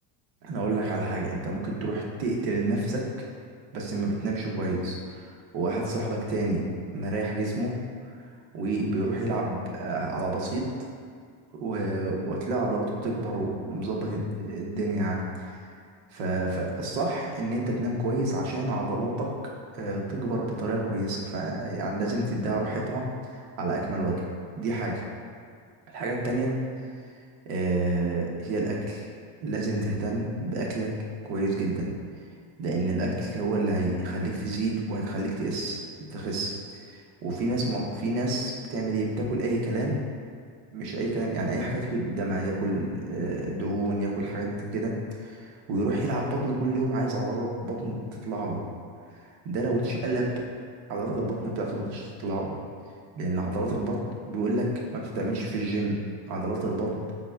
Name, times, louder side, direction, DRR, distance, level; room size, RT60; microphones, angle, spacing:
voice 1, 0.4-3.0 3.7-6.7 6.9-7.8 8.5-10.7 11.5-15.3 16.1-19.3 19.7-24.2 24.5-25.1 25.9-26.5 27.5-29.1 29.4-30.9 31.2-31.9 32.6-35.8 36.1-40.0 40.7-48.6 49.4-50.3 50.9-52.5 53.2-54.0 54.2-56.0 56.3-57.0, right 2 dB, 85° right, -1 dB, 1.0 m, -29 dB
5.2 x 4.0 x 2.3 m, 2.1 s
cardioid pair, 165°, 49 cm